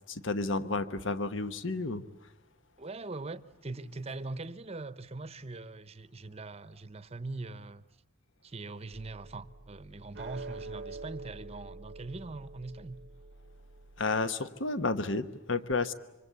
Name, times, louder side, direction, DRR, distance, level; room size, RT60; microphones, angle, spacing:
voice 1, 0.1-2.0 14.0-15.9, left 3 dB, 65° left, 1.1 m, -31 dB
voice 2, 2.8-7.8 8.4-13.0, right 3 dB, 30° right, 0.8 m, -42 dB
sound 1, 8.9-14.0, right 3 dB, 55° right, 0.8 m, -46 dB
26.5 x 24.5 x 8.2 m
head